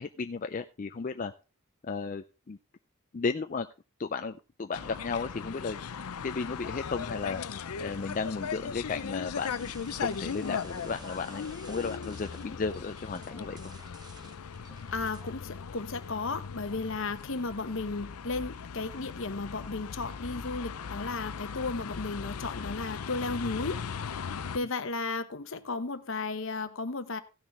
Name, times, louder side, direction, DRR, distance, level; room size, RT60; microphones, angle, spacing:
voice 1, 0.0-1.3 1.8-2.6 3.1-3.7 4.0-5.8 6.2-7.4 7.8-13.6, left 4 dB, 35° left, 0.4 m, -34 dB
sound 1, 4.7-24.6, left 6 dB, 90° left, 0.6 m, -38 dB
sound 2, 9.3-15.3, right 3 dB, 20° right, 0.5 m, -52 dB
voice 2, 14.9-24.3 24.5-27.2, left 3 dB, 65° left, 0.9 m, -34 dB
16.0 x 6.4 x 3.3 m
head